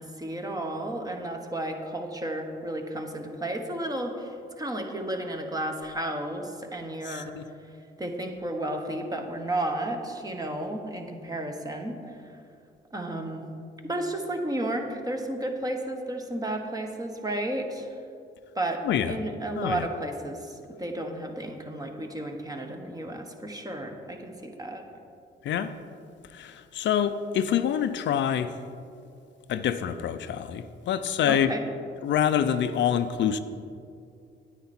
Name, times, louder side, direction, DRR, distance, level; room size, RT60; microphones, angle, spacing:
voice 1, 0.0-7.3 8.0-12.4 12.9-13.5 13.8-18.0 18.5-24.8 31.2-31.6, right 1 dB, 20° right, 4 dB, 1.2 m, -33 dB
voice 2, 7.1-7.4 18.8-19.2 19.6-19.8 25.4-25.7 26.3-28.5 29.5-31.5 32.0-33.4, left 9 dB, 65° left, 10 dB, 0.5 m, -26 dB
9.5 x 9.1 x 4.3 m, 2.4 s
cardioid pair, 90°, 20 cm